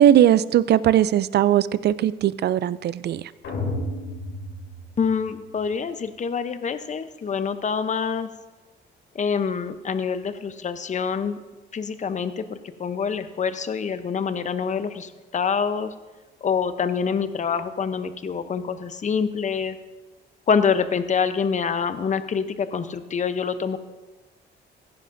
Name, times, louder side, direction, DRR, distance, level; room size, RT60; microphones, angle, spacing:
voice 1, 0.0-3.2, right 11 dB, 55° right, 17 dB, 0.4 m, -19 dB
sound 1, 3.4-5.6, left 1 dB, 75° left, 3.3 m, -32 dB
voice 2, 5.0-8.3 9.1-11.4 11.7-15.9 16.4-19.8 20.5-23.8, left 6 dB, 40° left, 11 dB, 0.7 m, -26 dB
16.0 x 10.0 x 2.6 m, 1.2 s
cardioid pair, 90°, 20 cm